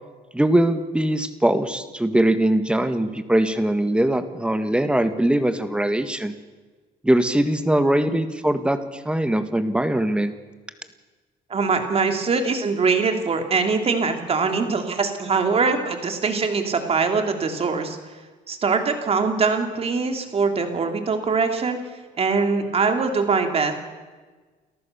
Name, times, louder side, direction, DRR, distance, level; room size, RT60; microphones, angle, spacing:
voice 1, 0.3-6.3 7.0-10.3, right 1 dB, 5° right, 9 dB, 1.7 m, -21 dB
voice 2, 11.5-18.0 18.5-21.8 22.2-23.7, right 4 dB, 35° right, 5 dB, 3.2 m, -22 dB
30.0 x 14.0 x 7.0 m, 1.3 s
cardioid pair, 110°, 17 cm